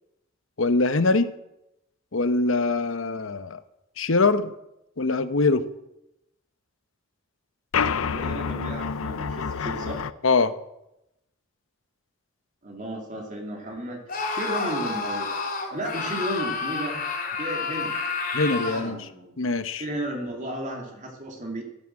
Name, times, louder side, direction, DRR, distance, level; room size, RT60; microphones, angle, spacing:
voice 1, 0.6-1.3 2.1-3.6 4.0-4.5 5.0-5.7 10.2-10.5 18.3-19.1 19.4-19.8, left 3 dB, 65° left, 12 dB, 0.9 m, -23 dB
sound 1, 7.7-10.1, left 6 dB, 85° left, 0.6 m, -28 dB
voice 2, 8.0-10.0 12.6-14.0 14.3-15.3 15.7-17.0 17.4-18.0 18.5-19.3 19.8-21.6, right 1 dB, 35° right, 1 dB, 2.7 m, -34 dB
Screaming, 14.1-18.9, left 4 dB, 45° left, 3.9 m, -29 dB
13.5 x 11.0 x 7.6 m, 0.88 s
head